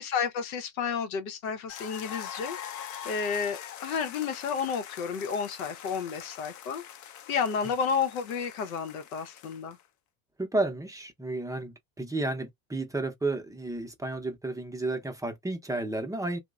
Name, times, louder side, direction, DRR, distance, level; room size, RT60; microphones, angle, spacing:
voice 1, 0.0-2.6 3.0-6.8 7.3-9.8, left 6 dB, 90° left, 0.7 m, -31 dB
sound 1, 1.7-9.8, left 9 dB, 45° left, 0.6 m, -43 dB
voice 2, 10.4-16.4, right 2 dB, 10° right, 0.6 m, -32 dB
2.9 x 2.1 x 2.3 m
hypercardioid pair, 90°, 41 cm